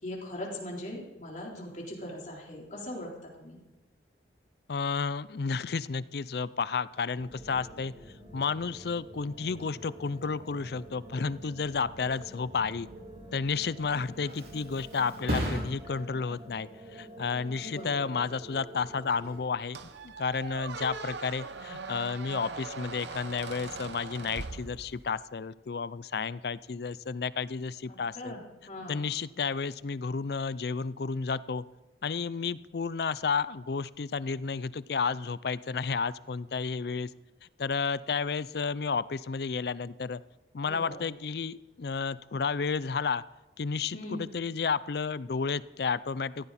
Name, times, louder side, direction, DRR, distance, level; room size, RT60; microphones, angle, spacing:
voice 1, 0.0-3.6 17.5-18.1 27.9-29.1 40.6-41.1 43.9-44.2, left 1 dB, 45° left, -2 dB, 4.0 m, -40 dB
voice 2, 4.7-7.9 8.3-12.9 13.3-19.8 20.0-28.4 28.9-31.6 32.0-37.1 37.6-40.2 40.5-43.2 43.6-46.5, left 5 dB, 60° left, 17 dB, 0.5 m, -32 dB
sound 1, 7.2-19.4, right 1 dB, 35° right, 2.9 m, -48 dB
Thump thud, 13.8-21.2 21.6-22.0, equal, 55° right, 4.2 m, -40 dB
Squeak, 19.7-25.2, right 4 dB, 75° right, 0.9 m, -41 dB
17.0 x 15.0 x 4.2 m, 1.0 s
head